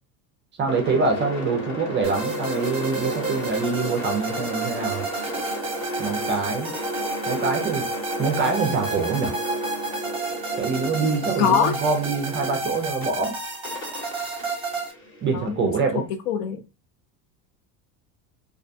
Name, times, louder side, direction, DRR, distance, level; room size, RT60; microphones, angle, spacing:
voice 1, 0.6-5.0 6.0-6.7 7.3-7.9 8.2-9.4 10.6-13.4 15.2-16.0, right 4 dB, 25° right, 0.4 m, -25 dB
sound 1, 0.7-13.0 13.6-15.8, equal, 25° left, 1.0 m, -33 dB
sound 2, 2.0-14.9, right 3 dB, 10° right, 0.8 m, -31 dB
voice 2, 11.4-11.7 15.3-15.7 16.3-16.6, left 8 dB, 70° left, 0.6 m, -22 dB
2.4 x 2.1 x 2.6 m
supercardioid pair, 110°, 46 cm